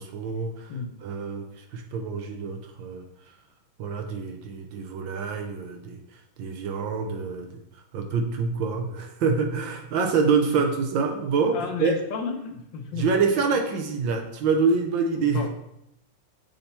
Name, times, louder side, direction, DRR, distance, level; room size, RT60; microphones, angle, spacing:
voice 1, 0.0-0.7 1.0-3.1 3.8-6.0 6.4-7.6 7.9-11.9 12.9-15.5, right 5 dB, 70° right, 4 dB, 1.4 m, -26 dB
voice 2, 0.7-1.0 10.5-10.6 11.5-13.1 15.2-15.5, left 5 dB, 70° left, 5 dB, 1.3 m, -32 dB
6.7 x 4.2 x 4.2 m, 0.79 s
omnidirectional pair, 2.3 m